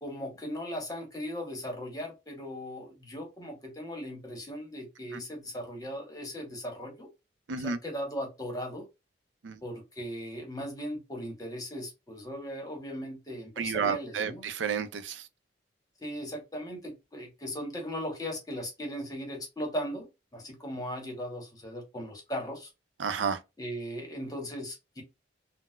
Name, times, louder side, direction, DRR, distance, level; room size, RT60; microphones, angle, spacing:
voice 1, 0.0-7.1 7.6-8.8 9.6-14.4 16.0-20.1 20.3-22.7 23.6-25.0, equal, 20° left, 1.0 m, -38 dB
voice 2, 13.6-15.2 23.0-23.4, right 6 dB, 75° right, 0.4 m, -31 dB
4.0 x 2.0 x 2.2 m
head